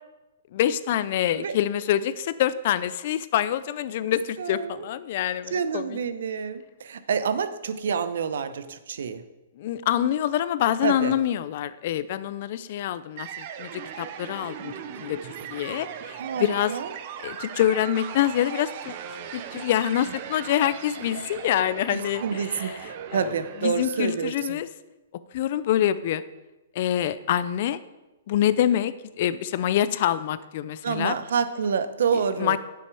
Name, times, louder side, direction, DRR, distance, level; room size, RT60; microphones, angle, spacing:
voice 1, 0.5-6.0 9.6-16.7 17.2-18.9 19.3-23.3 23.6-24.7 25.3-26.2 26.8-27.8 28.3-31.2 32.4-32.6, left 11 dB, 45° left, 15 dB, 0.4 m, -26 dB
voice 2, 4.4-4.8 5.5-9.2 10.8-11.1 16.2-16.9 21.9-24.6 30.8-32.6, right 6 dB, 70° right, 12 dB, 0.7 m, -28 dB
sound 1, 13.2-24.3, right 9 dB, 40° right, 0.7 m, -38 dB
9.2 x 7.0 x 4.8 m, 1.1 s
hypercardioid pair, 160°, 0 cm